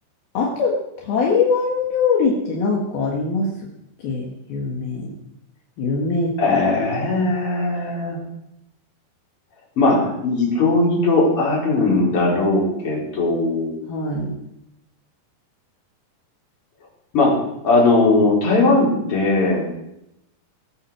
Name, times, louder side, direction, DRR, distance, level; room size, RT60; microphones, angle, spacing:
voice 1, 0.4-3.5 4.0-5.1 5.8-6.6 13.9-14.4, left 4 dB, 70° left, -2 dB, 3.6 m, -22 dB
voice 2, 6.4-8.2 9.8-13.8 17.1-17.3 17.6-19.7, left 2 dB, 35° left, -3 dB, 5.0 m, -19 dB
19.5 x 8.7 x 6.4 m, 0.85 s
omnidirectional pair, 4.6 m